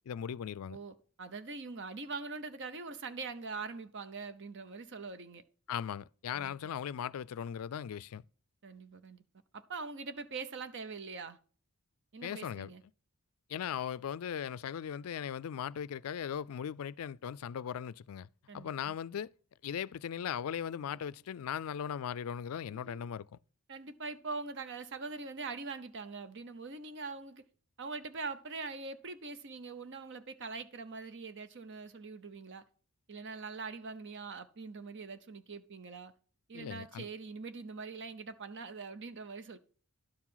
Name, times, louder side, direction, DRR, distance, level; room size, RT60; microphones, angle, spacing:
voice 1, 0.1-0.8 5.7-8.2 12.2-12.7 13.5-18.3 18.5-19.3 19.6-23.3 36.5-37.1, left 8 dB, 70° left, 0.4 m, -38 dB
voice 2, 0.7-5.4 6.3-6.5 8.6-9.2 9.5-11.4 12.1-12.8 18.5-18.9 22.7-23.1 23.7-27.4 27.8-32.6 33.1-36.1 36.5-39.6, right 4 dB, 55° right, 0.8 m, -43 dB
11.5 x 4.8 x 5.6 m
head